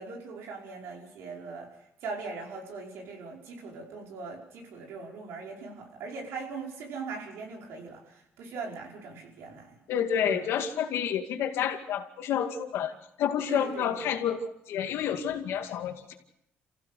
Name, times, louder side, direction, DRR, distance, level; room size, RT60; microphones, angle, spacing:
voice 1, 0.0-1.7 2.0-9.8 10.2-10.5 13.5-13.9, right 4 dB, 85° right, 5.4 m, -40 dB
voice 2, 9.9-12.9 13.2-16.1, left 8 dB, 80° left, 2.4 m, -29 dB
28.0 x 15.5 x 6.7 m
cardioid pair, 105°, 4 cm